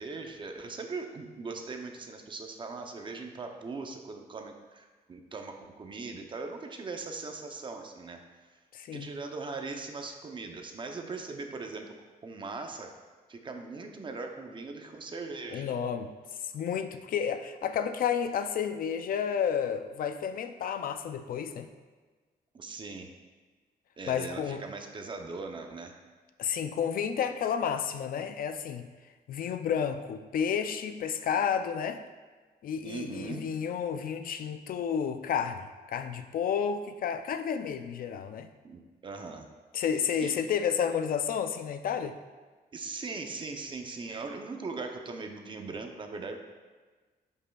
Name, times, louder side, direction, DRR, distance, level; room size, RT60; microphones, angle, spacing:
voice 1, 0.0-8.2 8.9-12.0 12.2-13.0 13.3-15.7 22.5-23.1 24.0-26.0 32.8-33.5 38.6-39.5 40.2-40.3 42.7-46.4, right 3 dB, 30° right, 4 dB, 0.5 m, -40 dB
voice 2, 8.7-9.1 15.5-16.1 16.5-21.7 24.1-24.6 26.4-28.9 29.3-32.0 32.6-38.5 39.7-42.2, left 7 dB, 60° left, 9 dB, 0.4 m, -31 dB
11.0 x 5.4 x 2.3 m, 1.3 s
wide cardioid pair, 175°, 16 cm